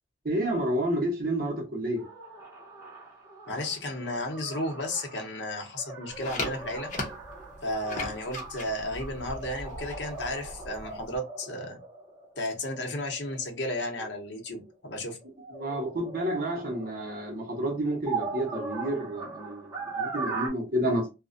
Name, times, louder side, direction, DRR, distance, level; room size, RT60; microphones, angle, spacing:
voice 1, 0.2-2.0 15.5-21.1, right 1 dB, 50° right, 0.9 m, -30 dB
sound 1, 2.0-14.7 15.2-20.5, right 4 dB, 15° right, 1.0 m, -40 dB
voice 2, 3.5-6.9 7.6-11.8 12.4-15.2, left 1 dB, 75° left, 0.8 m, -33 dB
sound 2, 6.1-11.2, left 2 dB, 40° left, 0.7 m, -39 dB
2.4 x 2.1 x 2.5 m
head